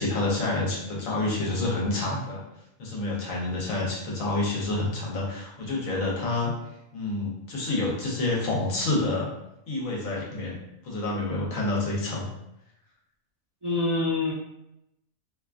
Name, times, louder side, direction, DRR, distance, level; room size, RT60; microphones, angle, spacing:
voice 1, 0.0-2.4 2.8-6.5 6.9-9.3 9.7-10.6 10.8-12.3, left 2 dB, 75° left, -3 dB, 1.1 m, -28 dB
voice 2, 13.6-14.3, left 2 dB, 35° right, -10 dB, 0.4 m, -26 dB
2.6 x 2.2 x 2.3 m, 0.85 s
omnidirectional pair, 1.4 m